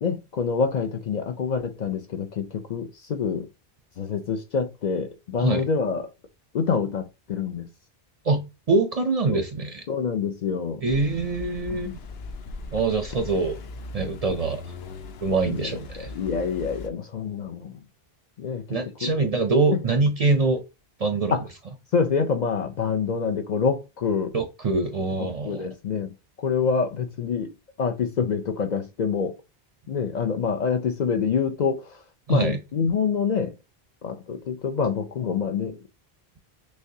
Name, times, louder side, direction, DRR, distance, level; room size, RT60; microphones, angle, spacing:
voice 1, 0.0-3.5 4.0-6.1 6.5-7.7 9.3-9.4 9.9-10.8 11.7-12.0 15.5-17.8 18.4-19.2 19.7-19.8 21.3-21.5 21.9-24.3 25.2-27.5 27.8-29.4 29.9-32.0 32.3-33.5 34.0-35.8, left 6 dB, 55° left, 0.5 m, -26 dB
voice 2, 8.7-9.8 10.8-11.9 12.7-13.6 13.9-14.6 15.2-16.1 18.7-20.6 21.0-21.3 24.3-25.7 32.3-32.6, right 3 dB, 50° right, 0.5 m, -24 dB
sound 1, 10.9-16.9, left 3 dB, 80° left, 0.9 m, -39 dB
6.3 x 2.2 x 2.7 m
omnidirectional pair, 1.0 m